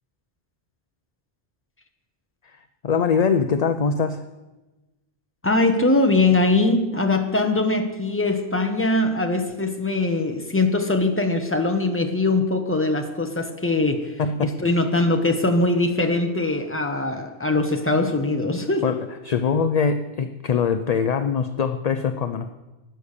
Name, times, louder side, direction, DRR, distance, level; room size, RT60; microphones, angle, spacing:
voice 1, 2.8-4.2 14.2-14.6 18.8-19.0 19.2-22.5, left 6 dB, 50° left, 9 dB, 0.5 m, -22 dB
voice 2, 5.4-18.9, left 2 dB, 10° left, 5 dB, 1.0 m, -22 dB
12.5 x 8.5 x 6.6 m, 1.1 s
omnidirectional pair, 1.1 m